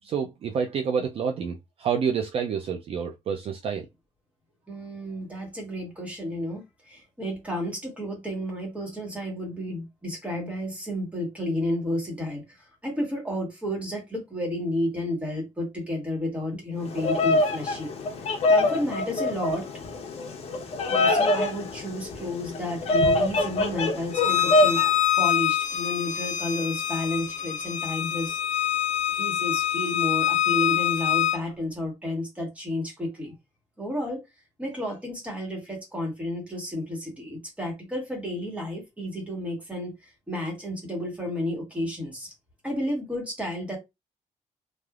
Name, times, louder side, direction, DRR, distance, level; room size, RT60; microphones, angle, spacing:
voice 1, 0.0-3.9, right 6 dB, 50° right, 0.4 m, -28 dB
voice 2, 4.7-12.4 12.8-17.9 18.5-19.7 20.9-24.8 25.2-28.4 29.2-33.3 33.8-34.2 34.6-39.9 40.3-42.3 42.6-43.8, left 1 dB, 10° right, 1.3 m, -31 dB
Bird vocalization bird call bird song, 16.8-24.9, left 2 dB, 55° left, 0.8 m, -24 dB
Bowed string instrument, 24.1-31.4, left 11 dB, 70° left, 0.4 m, -25 dB
3.3 x 2.4 x 2.3 m
cardioid pair, 155°, 13 cm